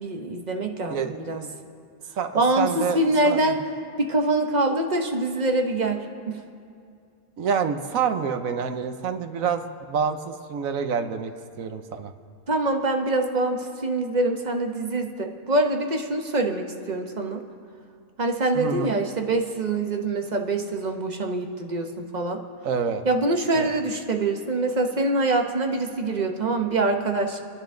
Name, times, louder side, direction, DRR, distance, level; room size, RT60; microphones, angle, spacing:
voice 1, 0.0-1.4 2.3-3.6 4.0-6.4 12.5-17.5 18.2-22.4 23.0-27.4, right 2 dB, 35° right, 3 dB, 1.1 m, -25 dB
voice 2, 0.9-1.5 2.2-3.0 3.2-3.5 7.4-11.3 11.6-12.1 18.5-19.0 22.6-23.0 23.5-23.7, right 6 dB, 70° right, 8 dB, 1.2 m, -27 dB
29.5 x 10.5 x 3.8 m, 2.4 s
omnidirectional pair, 1.5 m